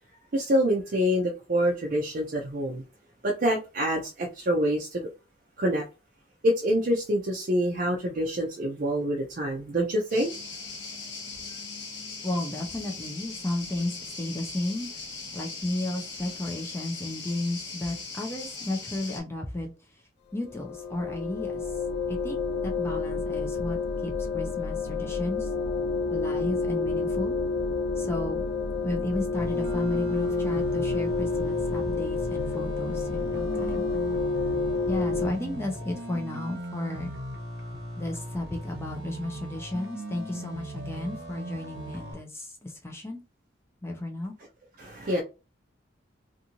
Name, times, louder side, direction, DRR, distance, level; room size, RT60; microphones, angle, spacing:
voice 1, 0.3-2.8 3.2-5.0 5.6-5.9 6.4-10.3 44.8-45.2, equal, 50° right, 0.5 m, -26 dB
sound 1, 10.1-19.2, left 4 dB, 85° left, 1.1 m, -39 dB
voice 2, 12.2-14.9 15.3-19.7 20.3-21.7 22.1-25.5 26.1-27.4 28.0-28.4 28.8-33.9 34.9-37.1 38.0-43.2 43.8-44.3, left 1 dB, 15° left, 0.5 m, -33 dB
sound 2, 20.4-35.3, left 4 dB, 65° left, 0.4 m, -29 dB
sound 3, 29.3-42.1, right 1 dB, 65° right, 1.3 m, -38 dB
2.6 x 2.5 x 2.9 m
head